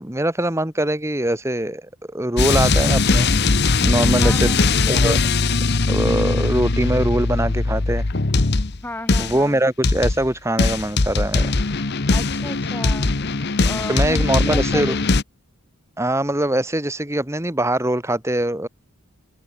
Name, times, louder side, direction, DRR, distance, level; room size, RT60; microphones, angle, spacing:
voice 1, 0.0-3.3 3.8-5.2 5.9-8.1 9.2-11.6 13.9-14.9 16.0-18.7, right 1 dB, 15° right, 1.6 m, -22 dB
sound 1, 2.4-8.8 9.1-9.4 9.8-10.3 10.6-15.2, left 3 dB, 50° left, 1.0 m, -20 dB
voice 2, 4.2-4.7 8.8-9.6 12.1-13.2 13.6-15.1, left 1 dB, 10° left, 1.3 m, -33 dB
open air
head